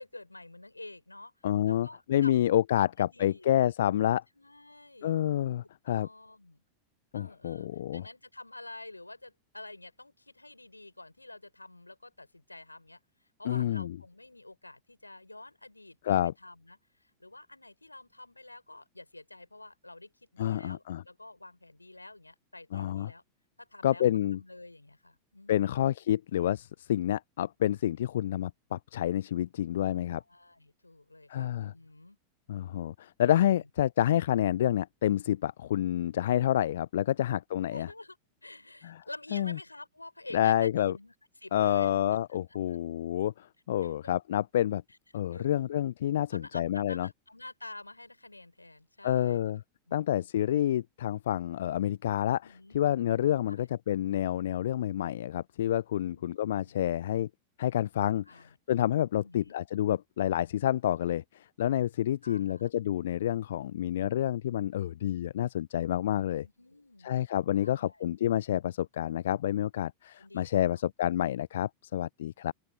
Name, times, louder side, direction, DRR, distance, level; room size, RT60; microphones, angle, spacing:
voice 1, 0.0-2.3 2.7-3.5 4.3-5.2 5.9-6.6 7.1-16.0 16.4-23.2 23.6-24.1 24.3-25.9 30.2-32.2 33.3-33.7 36.0-36.1 37.7-38.2 38.4-42.2 42.5-42.8 43.8-44.1 45.3-45.8 46.3-49.5 49.9-50.3 52.4-52.8 53.5-53.6 56.0-56.8 58.3-58.6 59.2-59.6 62.2-62.7 66.4-67.1 67.6-68.0 70.2-70.8, left 2 dB, 85° left, 6.3 m, -49 dB
voice 2, 1.4-4.2 5.0-6.1 7.1-8.0 13.5-14.0 16.0-16.3 20.4-21.0 22.7-23.1 23.8-24.4 25.5-30.2 31.3-31.7 32.5-37.9 38.8-39.0 39.3-39.6 40.3-40.9 41.5-44.8 45.1-47.1 49.0-49.6 49.9-57.3 57.6-66.5 67.0-72.5, left 11 dB, 60° left, 0.4 m, -28 dB
open air
figure-of-eight pair, 90°, 0 cm